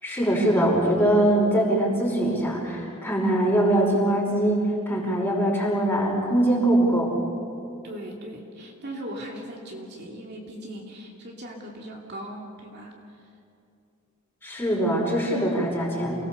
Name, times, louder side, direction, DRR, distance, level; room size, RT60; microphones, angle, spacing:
voice 1, 0.0-7.1 14.4-16.2, right 1 dB, 10° left, -3 dB, 5.5 m, -22 dB
voice 2, 7.8-12.9, right 1 dB, 50° right, -1 dB, 2.8 m, -39 dB
29.0 x 19.5 x 7.1 m, 2.6 s
head